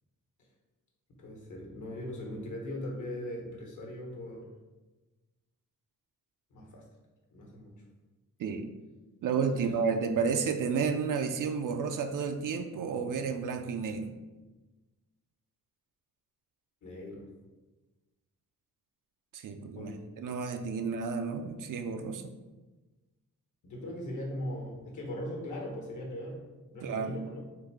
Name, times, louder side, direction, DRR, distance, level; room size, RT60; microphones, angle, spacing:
voice 1, 1.2-4.5 6.5-6.8 7.3-7.8 9.5-9.7 16.8-17.3 19.8-20.0 20.8-20.9 23.6-27.4, left 1 dB, 60° left, 0 dB, 1.2 m, -39 dB
voice 2, 9.2-14.1 19.3-19.9 20.2-22.2 26.8-27.2, right 5 dB, 70° right, 7 dB, 0.5 m, -31 dB
3.9 x 2.7 x 4.6 m, 1.2 s
wide cardioid pair, 145°, 33 cm